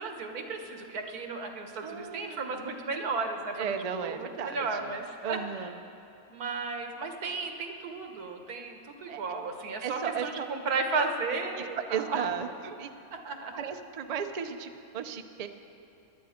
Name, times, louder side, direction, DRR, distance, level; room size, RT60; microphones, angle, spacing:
voice 1, 0.0-5.7 6.3-12.2 13.1-13.5, right 4 dB, 85° right, 4 dB, 1.7 m, -34 dB
voice 2, 1.8-2.6 3.6-4.9 5.2-5.7 9.1-9.2 9.8-10.5 11.6-12.9 13.5-15.5, right 7 dB, 55° right, 7 dB, 0.4 m, -35 dB
18.0 x 11.5 x 4.3 m, 3.0 s
omnidirectional pair, 1.5 m